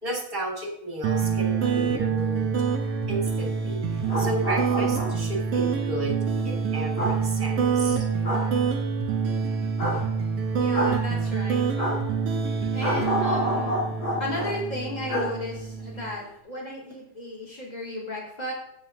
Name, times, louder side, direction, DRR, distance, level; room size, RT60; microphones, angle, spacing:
voice 1, 0.0-2.6 3.1-6.2 6.4-8.1, right 1 dB, 15° right, 1 dB, 2.8 m, -33 dB
sound 1, 1.0-16.1, right 6 dB, 55° right, 2.5 m, -26 dB
sound 2, 3.9-5.3 6.9-7.1 8.2-8.5 9.8-10.0 10.7-10.9 11.8-12.0 12.8-14.5 15.1-15.3 15.6-15.7, equal, 35° left, 4.6 m, -28 dB
voice 2, 10.6-11.6 12.7-13.8 14.2-18.5, left 1 dB, 10° left, -2 dB, 3.6 m, -34 dB
16.0 x 7.9 x 3.8 m, 0.79 s
omnidirectional pair, 3.9 m